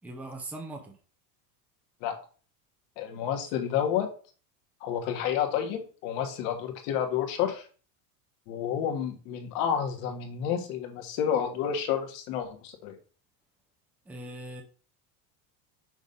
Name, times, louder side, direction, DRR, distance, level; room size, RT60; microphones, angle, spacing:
voice 1, 0.0-0.9 14.1-14.6, right 1 dB, 5° right, 3 dB, 0.6 m, -40 dB
voice 2, 3.0-4.1 4.8-7.6 8.5-13.0, left 9 dB, 60° left, 4 dB, 1.6 m, -30 dB
6.2 x 3.3 x 5.4 m, 0.38 s
cardioid pair, 175°, 44 cm